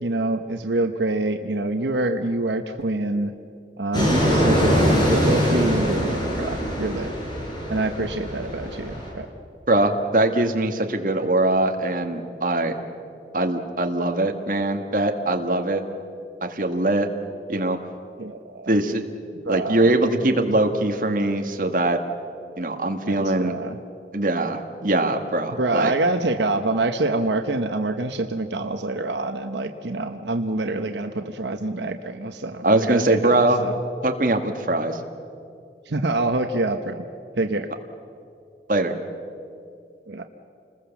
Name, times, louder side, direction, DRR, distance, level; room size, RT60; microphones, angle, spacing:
voice 1, 0.0-3.3 3.8-7.1 7.7-9.3 18.2-18.8 19.5-19.9 23.1-23.8 25.6-33.8 35.9-37.0 37.4-37.7 40.1-40.3, right 2 dB, 85° right, 7 dB, 1.0 m, -26 dB
Fixed-wing aircraft airplane, 3.9-9.1, equal, 25° left, 5.4 m, -22 dB
voice 2, 9.7-12.8 13.3-15.8 16.4-17.1 17.5-17.8 18.7-19.1 19.5-22.0 22.6-23.6 24.1-25.9 32.6-33.6 34.0-35.0 38.7-38.9, right 2 dB, 50° right, 4 dB, 1.7 m, -22 dB
28.5 x 20.5 x 7.2 m, 2.4 s
head